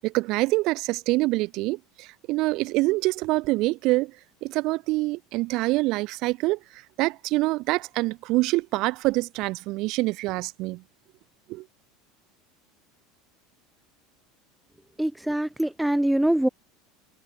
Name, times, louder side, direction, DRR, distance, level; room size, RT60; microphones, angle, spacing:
voice 1, 0.0-4.1 4.4-6.6 7.0-10.8 11.5-11.6, right 21 dB, 60° right, 7.4 m, -25 dB
voice 2, 15.0-16.5, right 1 dB, 5° right, 0.6 m, -23 dB
supercardioid pair, 105°, 0 cm